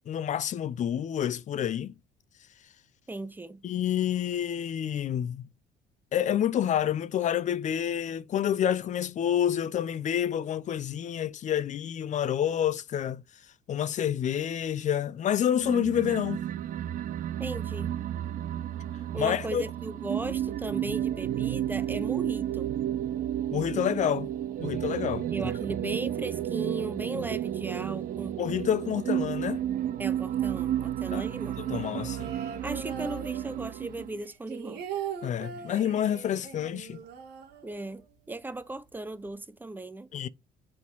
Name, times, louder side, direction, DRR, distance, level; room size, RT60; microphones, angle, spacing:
voice 1, 0.1-1.9 3.6-5.5 6.1-13.2 13.7-16.4 19.2-19.6 23.5-24.3 24.6-25.3 28.4-29.6 31.1-31.2 31.6-32.3 35.2-37.0 40.1-40.3, left 10 dB, 45° left, 0.5 m, -28 dB
voice 2, 3.1-3.6 17.4-17.9 19.1-22.7 25.3-28.4 30.0-31.6 32.6-34.8 37.6-40.1, right 2 dB, 10° right, 0.7 m, -37 dB
sound 1, 15.6-34.2, right 11 dB, 55° right, 0.6 m, -32 dB
sound 2, 31.7-33.9 34.2-38.1 38.4-38.5 38.8-39.3, right 7 dB, 75° right, 1.6 m, -40 dB
5.9 x 3.8 x 4.6 m
cardioid pair, 110°, 17 cm